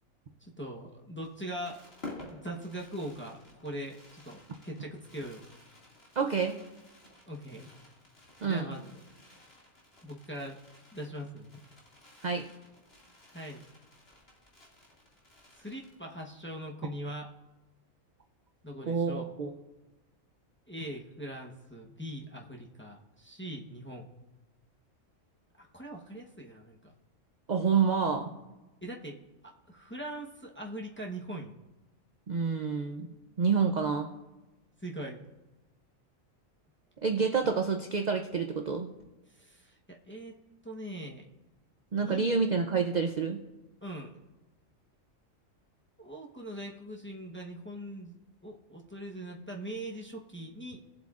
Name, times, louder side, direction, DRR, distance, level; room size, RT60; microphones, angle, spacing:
voice 1, 0.4-1.8 2.3-3.4 3.6-5.4 7.3-7.7 8.4-9.0 10.0-10.6 10.9-11.6 13.3-13.6 15.6-17.3 18.6-19.3 20.7-24.1 25.6-26.9 28.8-29.2 29.4-31.6 34.8-35.3 39.3-40.4 40.6-41.2 41.9-42.4 43.8-44.2 46.0-48.2 48.4-50.8, right 1 dB, 10° left, -1 dB, 0.8 m, -41 dB
Fireworks, 1.2-16.4 16.7-16.8 16.9-17.2, left 2 dB, 50° left, 2.4 m, -53 dB
voice 2, 6.2-6.6 8.4-8.7 12.2-12.5 18.9-19.5 27.5-28.3 32.3-33.1 33.4-34.1 37.0-38.9 41.9-43.4, right 5 dB, 50° right, 4 dB, 0.6 m, -28 dB
19.5 x 7.7 x 2.4 m, 1.1 s
omnidirectional pair, 1.4 m